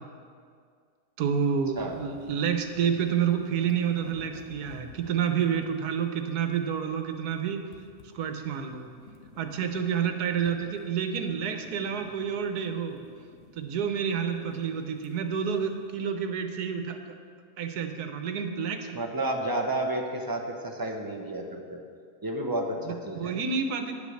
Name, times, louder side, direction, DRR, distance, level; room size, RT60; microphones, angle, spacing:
voice 1, 1.2-7.6 8.1-8.9 9.4-13.0 13.6-17.2 17.6-19.0 22.8-23.9, right 7 dB, 90° right, 7 dB, 1.4 m, -29 dB
sound 1, 1.7-16.0, left 4 dB, 60° left, 1.4 m, -53 dB
voice 2, 18.9-21.8 22.2-23.3, right 1 dB, 15° right, 1 dB, 0.9 m, -31 dB
10.0 x 8.6 x 6.4 m, 2.1 s
omnidirectional pair, 1.6 m